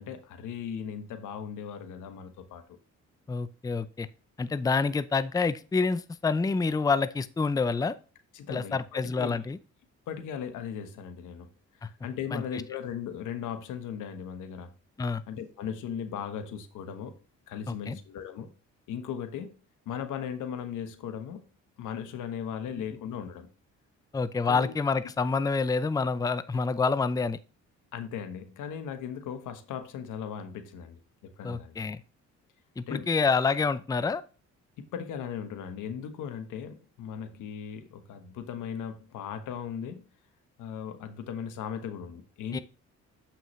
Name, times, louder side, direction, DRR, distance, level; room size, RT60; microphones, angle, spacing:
voice 1, 0.0-2.6 8.3-9.3 10.1-11.5 11.7-14.7 15.3-17.2 17.5-18.5 18.9-19.6 19.9-21.5 21.8-23.5 24.5-24.7 27.9-31.8 32.9-33.1 34.8-40.1 40.6-42.6, left 8 dB, 85° left, 1.1 m, -37 dB
voice 2, 3.3-4.1 4.4-8.0 8.5-9.6 11.8-11.9 12.3-12.4 15.0-15.2 17.7-18.0 24.1-27.4 31.4-32.0 32.8-34.2 42.5-42.6, left 4 dB, 10° left, 0.5 m, -27 dB
7.3 x 5.8 x 3.1 m
cardioid pair, 90°, 30 cm